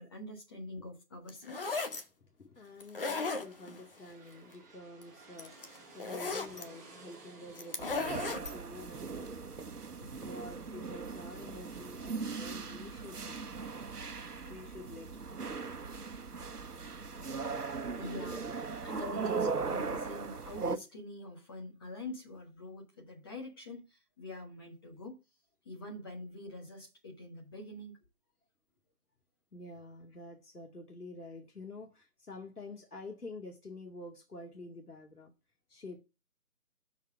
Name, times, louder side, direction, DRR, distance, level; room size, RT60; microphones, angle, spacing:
voice 1, 0.0-1.7 17.9-18.4 18.8-25.2 25.6-27.9, left 1 dB, 15° left, 1.3 m, -45 dB
sound 1, 1.3-2.0 2.8-3.8 5.0-5.1 5.4-6.6 7.6-8.6, left 4 dB, 35° left, 1.0 m, -36 dB
voice 2, 2.0-9.9 10.2-13.5 14.5-15.4 17.4-17.5 18.8-18.9 29.5-35.3 35.7-36.0, left 2 dB, 80° left, 2.1 m, -48 dB
sound 2, 2.7-10.4, right 3 dB, 10° right, 1.2 m, -57 dB
sound 3, 7.8-20.8, right 4 dB, 80° right, 1.2 m, -39 dB
6.0 x 5.5 x 6.1 m
figure-of-eight pair, 155°, 45 cm